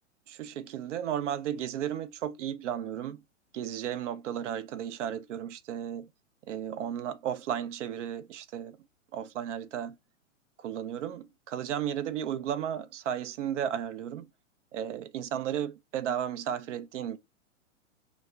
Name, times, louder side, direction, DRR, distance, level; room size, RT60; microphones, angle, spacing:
voice 1, 0.3-3.2 3.5-6.1 6.5-8.8 9.1-10.0 10.6-14.3 14.7-17.2, right 9 dB, 65° right, 0.5 m, -34 dB
2.2 x 2.1 x 3.3 m
hypercardioid pair, 130°, 39 cm